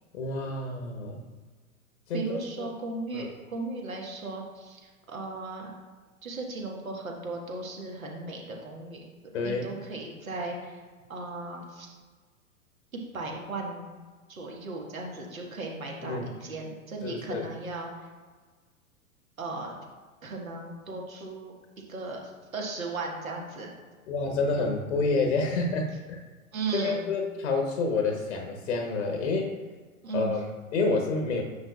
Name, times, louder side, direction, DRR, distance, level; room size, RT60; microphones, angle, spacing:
voice 1, 0.1-1.2 2.1-2.7 3.1-3.3 9.3-9.7 16.0-16.3 17.0-17.5 24.1-26.3 26.7-29.5 30.1-31.4, left 3 dB, 60° left, 2 dB, 1.1 m, -29 dB
voice 2, 2.1-5.7 6.2-10.8 11.1-11.9 12.9-13.9 14.3-18.1 19.4-19.8 20.2-21.5 21.9-23.7 26.5-27.1 30.0-30.3, right 3 dB, 70° right, 0 dB, 1.5 m, -36 dB
9.5 x 5.8 x 2.3 m, 1.4 s
figure-of-eight pair, 100°, 43 cm